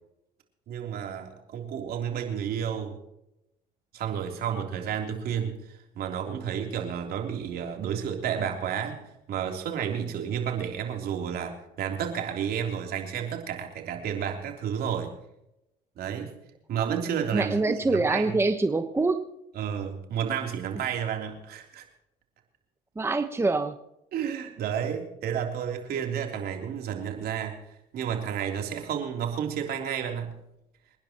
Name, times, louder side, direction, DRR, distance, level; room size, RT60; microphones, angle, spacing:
voice 1, 0.7-3.0 3.9-15.1 15.9-16.3 16.7-18.3 19.5-21.9 24.1-27.6 27.9-30.3, right 8 dB, 65° right, 3 dB, 3.5 m, -31 dB
voice 2, 17.3-19.2 23.0-23.8, right 3 dB, 15° right, 8 dB, 1.2 m, -25 dB
27.5 x 10.5 x 3.0 m, 0.85 s
supercardioid pair, 90°, 17 cm